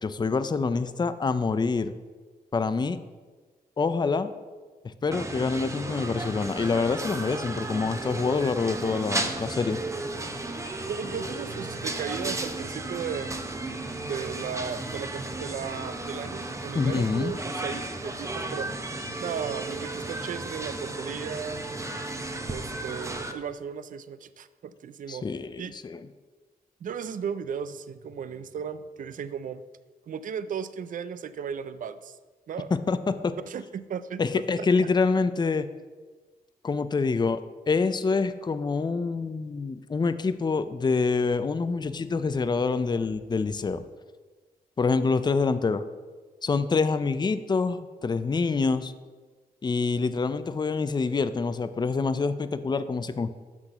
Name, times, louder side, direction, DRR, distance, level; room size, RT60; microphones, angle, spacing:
voice 1, 0.0-1.9 2.5-3.0 3.8-4.3 4.8-9.8 16.7-17.3 25.1-26.0 32.9-33.3 34.2-35.7 36.6-37.4 37.7-43.8 44.8-45.8 46.4-48.9 49.6-53.3, left 4 dB, 30° left, 12 dB, 0.5 m, -26 dB
sound 1, 5.1-23.3, right 2 dB, 20° right, 0.8 m, -34 dB
voice 2, 10.9-13.4 14.0-18.7 19.2-21.6 22.5-25.3 25.6-25.7 26.8-29.6 30.1-32.2 32.5-32.7 33.5-34.7, right 7 dB, 60° right, 13 dB, 0.4 m, -36 dB
6.1 x 6.0 x 6.6 m, 1.4 s
cardioid pair, 75°, 16 cm